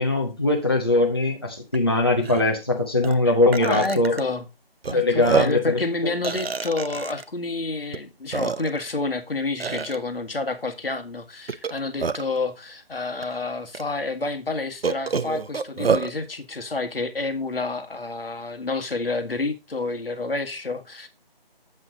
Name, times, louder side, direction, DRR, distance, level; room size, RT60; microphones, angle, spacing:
voice 1, 0.0-4.1 4.9-5.8, left 2 dB, 25° left, 0.8 m, -21 dB
Burping eructation, 1.7-1.8 2.2-2.4 3.0-3.1 3.5-4.2 4.8-4.9 5.2-5.7 6.2-7.2 7.9-8.0 8.3-8.9 9.6-10.0 11.5-12.4 13.2-13.3 13.7-13.8 14.8-16.1, right 5 dB, 75° right, 0.8 m, -26 dB
voice 2, 3.6-4.4 4.9-21.1, left 3 dB, 70° left, 1.6 m, -29 dB
7.9 x 7.3 x 3.8 m
figure-of-eight pair, 180°, 30 cm